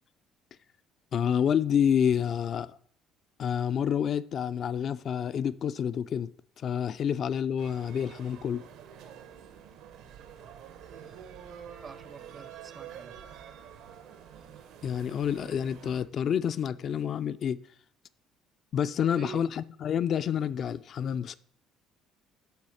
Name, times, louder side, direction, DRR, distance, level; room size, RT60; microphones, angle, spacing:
voice 1, 1.1-2.8 3.4-6.3 6.6-8.7 14.8-17.6 18.7-21.4, left 8 dB, 45° left, 0.3 m, -28 dB
sound 1, 7.6-16.0, right 8 dB, 75° right, 0.9 m, -48 dB
voice 2, 11.8-13.2 19.0-19.5, right 6 dB, 30° right, 0.5 m, -46 dB
7.1 x 4.7 x 6.4 m
cardioid pair, 135°, 0 cm